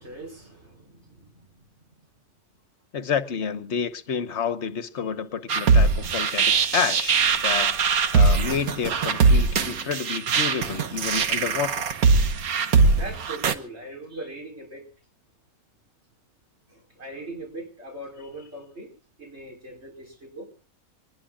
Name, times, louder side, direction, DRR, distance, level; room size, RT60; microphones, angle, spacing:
voice 1, 0.0-1.6 1.9-2.1 5.0-5.1 10.2-10.3 13.0-14.9 16.7-18.9 19.2-20.5, right 2 dB, 50° right, 5.1 m, -40 dB
voice 2, 2.9-7.8 8.1-11.8, left 6 dB, 55° left, 1.4 m, -29 dB
sound 1, 5.5-13.5, right 4 dB, 85° right, 1.7 m, -21 dB
24.5 x 20.0 x 2.5 m
omnidirectional pair, 1.5 m